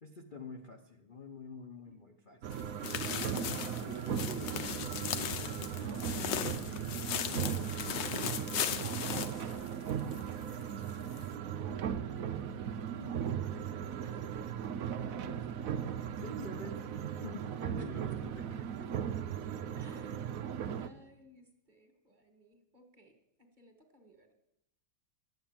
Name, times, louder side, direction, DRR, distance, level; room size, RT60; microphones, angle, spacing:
voice 1, 0.0-2.5 3.9-8.4 16.2-16.8 17.2-18.7, left 3 dB, 45° left, 2 dB, 0.6 m, -48 dB
sound 1, 2.4-20.9, right 8 dB, 80° right, 0.7 m, -37 dB
sound 2, 2.5-10.2 10.5-10.6 11.1-11.2, left 9 dB, 65° left, 1.3 m, -37 dB
voice 2, 12.8-15.7 16.0-16.1 17.8-17.9 18.8-18.9 19.7-20.3 20.7-24.3, left 1 dB, 25° right, 5 dB, 1.6 m, -59 dB
11.5 x 8.8 x 8.9 m, 0.80 s
omnidirectional pair, 2.4 m